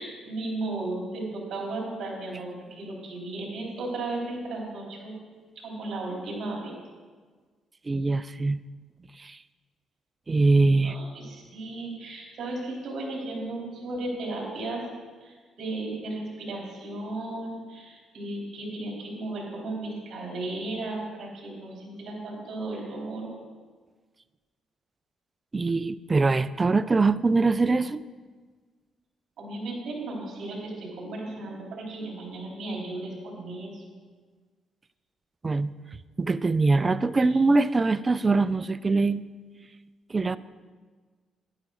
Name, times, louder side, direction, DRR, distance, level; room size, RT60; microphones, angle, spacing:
voice 1, 0.0-5.2 5.6-6.7 10.8-14.8 15.2-23.3 29.4-33.8 37.3-37.4, right 2 dB, 65° right, -2 dB, 3.4 m, -35 dB
voice 2, 7.9-8.6 9.2-9.4 10.3-11.0 25.5-28.0 35.4-35.7 36.2-39.2 40.1-40.4, right 3 dB, 25° right, 16 dB, 0.4 m, -23 dB
11.0 x 10.5 x 3.9 m, 1.5 s
cardioid pair, 90°, 0 cm